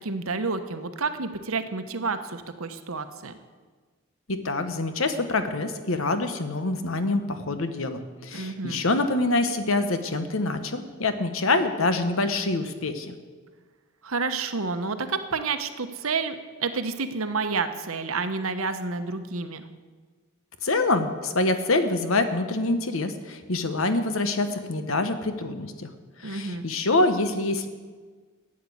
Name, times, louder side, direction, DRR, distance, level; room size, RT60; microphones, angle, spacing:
voice 1, 0.0-3.3 8.3-8.8 14.0-19.6 26.2-26.6, right 4 dB, 75° right, 9 dB, 1.0 m, -29 dB
voice 2, 4.3-13.2 20.6-25.9 26.2-27.7, left 2 dB, 70° left, 9 dB, 1.1 m, -26 dB
12.5 x 8.6 x 8.5 m, 1.5 s
head